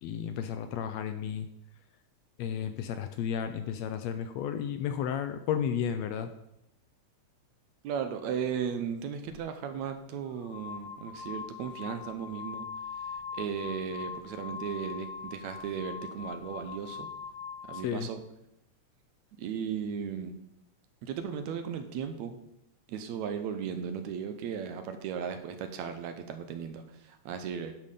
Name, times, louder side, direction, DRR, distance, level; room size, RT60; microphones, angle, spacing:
voice 1, 0.0-1.5 2.4-6.3 17.7-18.1, left 8 dB, 80° left, 8 dB, 1.6 m, -33 dB
voice 2, 7.8-12.6 13.3-17.1 17.7-18.2 19.4-20.4 21.0-22.4 22.9-27.7, right 7 dB, 80° right, 7 dB, 2.0 m, -36 dB
sound 1, 9.3-9.4 10.2-17.9, left 6 dB, 55° left, 1.6 m, -42 dB
10.5 x 3.7 x 6.5 m, 0.82 s
omnidirectional pair, 3.4 m